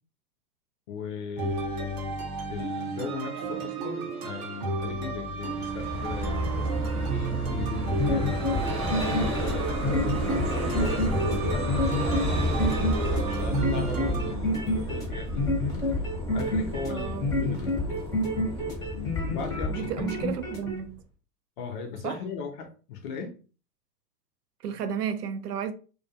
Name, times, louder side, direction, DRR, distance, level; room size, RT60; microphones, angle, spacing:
voice 1, 0.9-2.2 2.5-8.4 9.3-15.9 16.3-17.8 19.3-20.1 21.6-23.4, left 5 dB, 35° left, 0.5 m, -38 dB
sound 1, 1.4-14.3, right 4 dB, 40° right, 0.8 m, -33 dB
Vehicle, 5.5-20.9, equal, 15° right, 1.0 m, -31 dB
sound 2, 7.9-20.8, left 1 dB, 10° left, 0.8 m, -29 dB
voice 2, 10.2-10.5 16.9-17.3 19.7-21.0 22.0-22.2 24.6-25.7, right 8 dB, 80° right, 0.6 m, -33 dB
2.3 x 2.3 x 2.6 m
hypercardioid pair, 120°, 47 cm